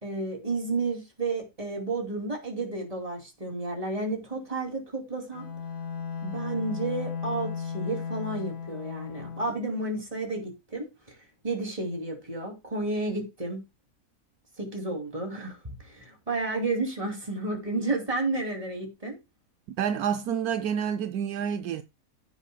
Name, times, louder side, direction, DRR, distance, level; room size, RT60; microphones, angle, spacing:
voice 1, 0.0-5.5 6.2-11.2 11.4-13.6 14.6-19.2, right 2 dB, 25° right, 2.7 m, -31 dB
Bowed string instrument, 5.3-9.6, left 6 dB, 60° left, 1.8 m, -35 dB
voice 2, 19.7-21.8, right 8 dB, 80° right, 1.1 m, -28 dB
16.0 x 7.0 x 2.2 m
omnidirectional pair, 1.6 m